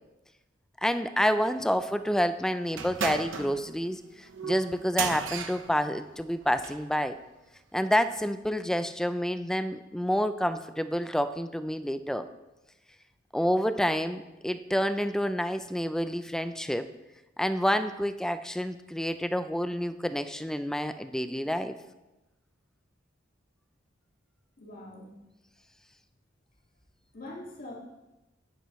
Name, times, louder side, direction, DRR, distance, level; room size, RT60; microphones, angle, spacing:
voice 1, 0.8-4.0 4.4-7.2 7.7-12.2 13.3-16.9 17.4-21.8, equal, 5° left, 10 dB, 0.3 m, -28 dB
sound 1, 2.7-6.9, right 6 dB, 85° right, 0.8 m, -35 dB
voice 2, 24.6-25.1 27.1-27.7, left 1 dB, 50° left, -2 dB, 2.0 m, -43 dB
10.5 x 8.9 x 3.1 m, 1.0 s
head